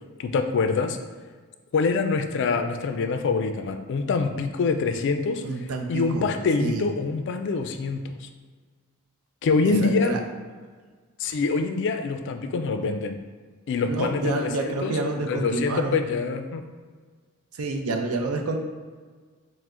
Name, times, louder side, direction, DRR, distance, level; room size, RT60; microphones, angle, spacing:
voice 1, 0.2-1.0 1.7-5.4 5.9-8.3 9.4-10.2 11.2-13.2 13.7-16.7, left 4 dB, 55° left, 6 dB, 0.3 m, -25 dB
voice 2, 5.4-6.2 6.6-6.8 9.8-10.2 13.9-16.0 17.6-18.6, right 2 dB, 80° right, 3 dB, 0.5 m, -28 dB
4.8 x 2.1 x 3.6 m, 1.5 s
head